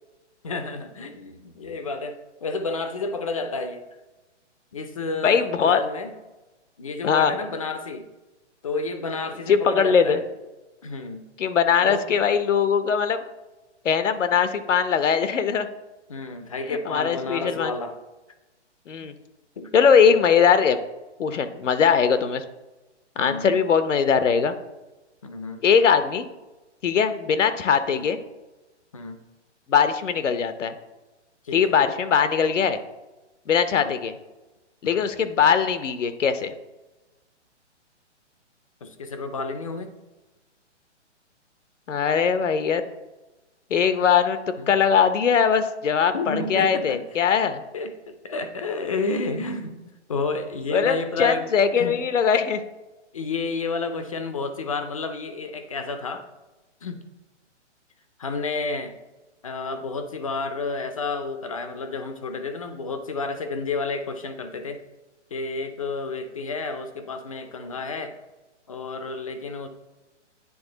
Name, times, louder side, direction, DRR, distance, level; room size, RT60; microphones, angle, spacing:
voice 1, 0.4-3.8 4.7-6.1 6.8-8.1 8.6-10.2 10.8-11.3 11.8-12.1 16.1-17.9 19.6-19.7 23.2-23.6 25.2-25.6 27.9-28.1 28.9-29.2 31.4-31.8 33.7-33.9 34.8-35.1 38.8-39.9 44.6-44.7 46.1-47.0 47.7-49.8 50.1-51.5 51.7-52.0 53.1-56.3 56.8-57.0 58.2-59.0 59.4-64.8 65.3-68.2 68.7-69.7, left 3 dB, 30° left, 8 dB, 0.4 m, -31 dB
voice 2, 5.2-5.8 7.0-7.4 9.5-10.2 11.4-13.2 13.8-15.7 16.7-17.7 18.9-19.1 19.7-20.8 21.2-22.4 23.2-24.5 25.6-26.3 26.8-28.2 29.7-30.7 31.5-32.8 33.5-34.1 34.8-36.5 41.9-42.8 43.7-47.6 50.7-52.6, left 7 dB, 90° left, 11 dB, 0.8 m, -21 dB
9.7 x 3.5 x 3.9 m, 1.1 s
hypercardioid pair, 160°, 36 cm